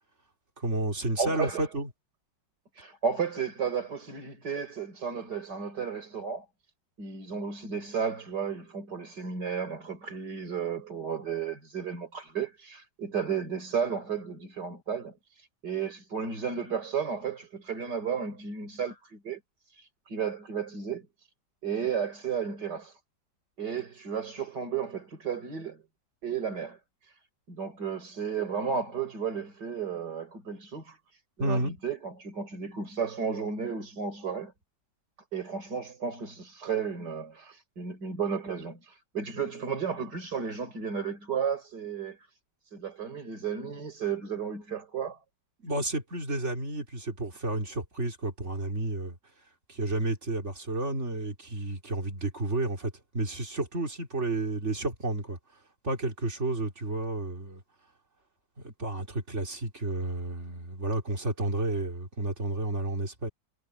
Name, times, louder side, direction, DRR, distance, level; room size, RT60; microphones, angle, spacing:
voice 1, 0.6-1.9 31.4-31.8 45.6-49.2 49.7-55.4 55.8-57.6 58.6-63.3, right 2 dB, 35° right, 3.1 m, -31 dB
voice 2, 1.2-1.7 2.7-6.5 7.0-19.4 19.7-21.3 21.6-23.0 23.6-25.8 26.2-27.2 27.5-34.5 35.3-42.2 42.6-45.2, right 6 dB, 60° right, 4.5 m, -33 dB
omnidirectional pair, 2.1 m